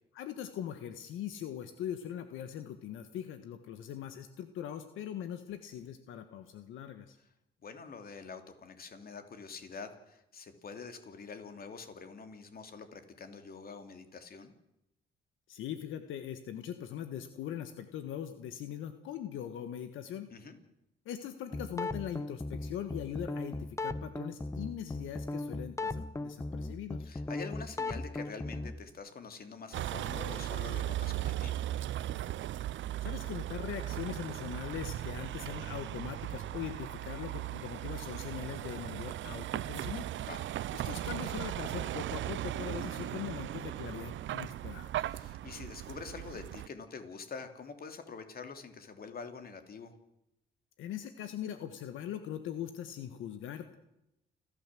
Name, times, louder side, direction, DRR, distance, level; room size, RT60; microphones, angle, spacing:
voice 1, 0.1-7.2 15.5-20.3 21.0-27.1 33.0-40.1 40.7-45.2 50.8-53.8, left 10 dB, 85° left, 9 dB, 1.5 m, -41 dB
voice 2, 7.6-14.5 20.3-20.6 27.0-31.7 40.2-40.4 45.1-49.9, left 5 dB, 50° left, 7 dB, 3.0 m, -46 dB
sound 1, 21.5-28.8, left 2 dB, 15° left, 1.0 m, -38 dB
Vehicle, 29.7-46.7, right 13 dB, 70° right, 0.7 m, -37 dB
29.0 x 13.5 x 7.6 m, 0.87 s
cardioid pair, 90°, 20 cm